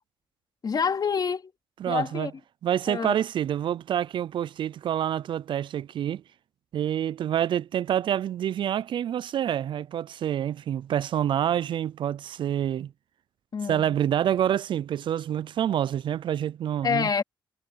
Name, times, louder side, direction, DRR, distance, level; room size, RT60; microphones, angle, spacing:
voice 1, 0.6-1.5 1.9-2.3 2.9-3.1 13.5-14.0 16.8-17.2, left 6 dB, 50° left, 3.8 m, -27 dB
voice 2, 1.8-2.3 2.6-6.2 6.7-12.9 13.7-17.1, right 10 dB, 65° right, 0.5 m, -27 dB
supercardioid pair, 60°, 9 cm